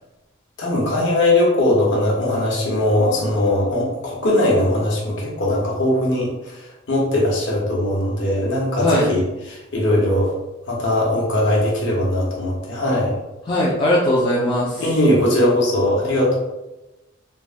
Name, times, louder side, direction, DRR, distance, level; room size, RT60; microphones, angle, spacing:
voice 1, 0.6-6.6 6.9-9.2 9.5-10.3 10.7-13.1 14.8-16.4, left 1 dB, 65° left, -3 dB, 0.8 m, -19 dB
voice 2, 13.4-14.8, left 1 dB, 25° left, -5 dB, 0.3 m, -19 dB
3.4 x 2.1 x 2.4 m, 1.0 s
head